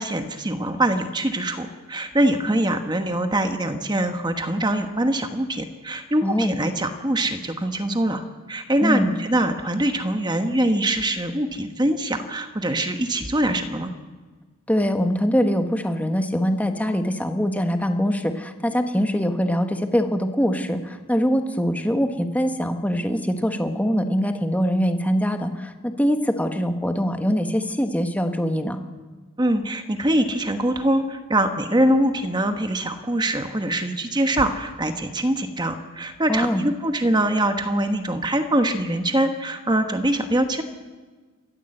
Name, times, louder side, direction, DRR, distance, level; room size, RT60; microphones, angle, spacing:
voice 1, 0.0-13.9 29.4-40.6, right 1 dB, 20° right, 6 dB, 1.2 m, -23 dB
voice 2, 6.2-6.5 8.8-9.1 14.7-28.8 36.3-36.6, equal, 5° left, 6 dB, 1.2 m, -23 dB
28.0 x 14.0 x 7.9 m, 1.4 s
head